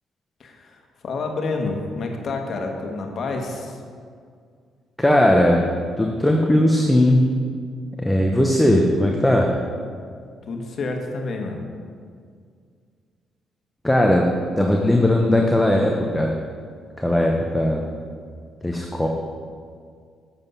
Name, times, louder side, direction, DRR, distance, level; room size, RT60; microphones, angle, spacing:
voice 1, 0.4-3.8 10.5-11.6, left 3 dB, 55° left, 3 dB, 1.3 m, -29 dB
voice 2, 5.0-5.6 6.0-7.2 8.0-9.5 13.8-14.2 14.6-16.3 17.0-17.9 18.6-19.1, left 1 dB, 10° left, 1 dB, 0.8 m, -18 dB
7.8 x 7.2 x 5.5 m, 2.1 s
cardioid pair, 90°, 0 cm